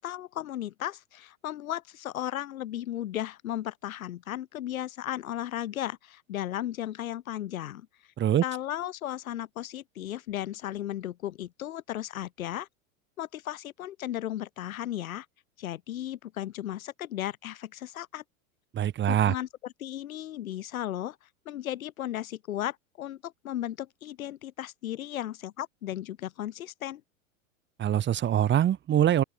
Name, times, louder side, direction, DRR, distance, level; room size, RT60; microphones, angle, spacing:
voice 1, 0.0-7.9 8.4-12.7 13.2-15.3 15.6-18.2 19.1-21.2 21.5-27.0, left 12 dB, 75° left, 4.4 m, -35 dB
voice 2, 18.7-19.3 27.8-29.2, right 10 dB, 25° right, 2.0 m, -23 dB
open air
hypercardioid pair, 110°, 42 cm